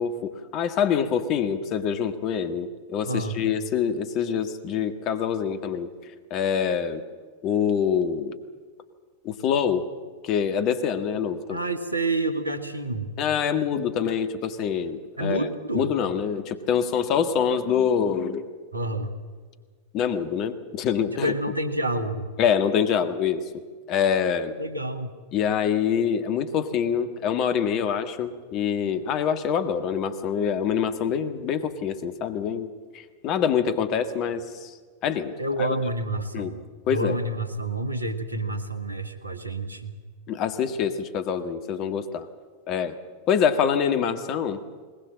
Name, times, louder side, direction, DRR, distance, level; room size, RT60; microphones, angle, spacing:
voice 1, 0.0-5.9 6.3-7.0 7.4-8.4 9.2-9.9 10.2-11.6 13.2-15.4 15.7-18.5 19.9-21.3 22.4-23.5 23.9-24.5 25.3-34.7 35.0-35.7 36.3-36.5 36.9-37.2 40.3-42.3 42.7-42.9 43.3-44.6, left 7 dB, 40° left, 9 dB, 1.7 m, -25 dB
voice 2, 3.0-3.4 11.5-13.1 15.2-15.9 18.7-19.1 21.2-22.3 24.6-25.1 35.4-39.9, right 2 dB, 80° right, 9 dB, 1.7 m, -28 dB
20.5 x 20.5 x 7.4 m, 1.5 s
figure-of-eight pair, 90°, 0 cm